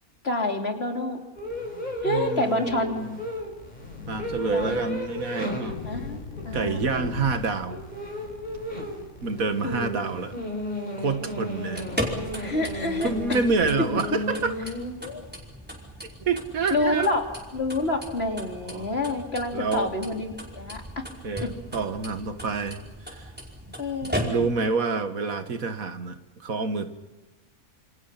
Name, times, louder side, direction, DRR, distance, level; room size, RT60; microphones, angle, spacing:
voice 1, 0.2-1.2 2.0-2.9 4.5-4.8 5.6-6.8 9.6-10.1 12.4-13.4 15.0-15.2 16.7-17.2 17.5-21.0 21.4-21.5 23.8-24.5, left 2 dB, 45° left, 2 dB, 3.6 m, -28 dB
sound 1, 1.4-14.9, left 1 dB, 30° left, 5.2 m, -34 dB
voice 2, 2.0-3.2 4.1-5.8 6.5-7.9 9.2-10.3 11.0-11.9 13.0-14.7 16.2-17.1 18.6-18.9 19.5-19.9 21.2-22.8 23.1-23.3 24.0-26.9, right 4 dB, 75° right, 8 dB, 2.1 m, -28 dB
Thunder / Rain, 3.0-15.4, left 4 dB, 75° left, 2.4 m, -42 dB
Vehicle's Turning Signal - On, 11.6-24.7, equal, 5° right, 5.2 m, -37 dB
28.0 x 27.5 x 5.8 m, 1.2 s
omnidirectional pair, 1.5 m